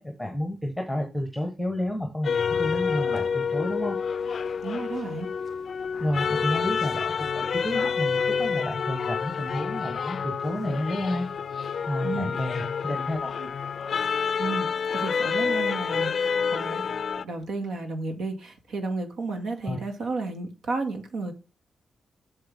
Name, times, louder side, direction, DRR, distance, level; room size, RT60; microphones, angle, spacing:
voice 1, 0.0-4.0 6.0-7.0 7.4-11.3 11.9-13.5 19.6-19.8, left 1 dB, ahead, 1.1 m, -30 dB
sound 1, 2.2-17.2, left 6 dB, 50° left, 0.4 m, -28 dB
voice 2, 4.6-5.3 12.0-12.3 14.4-16.8 17.2-21.3, right 3 dB, 80° right, 2.0 m, -32 dB
7.8 x 7.0 x 3.5 m
wide cardioid pair, 160°, 0 cm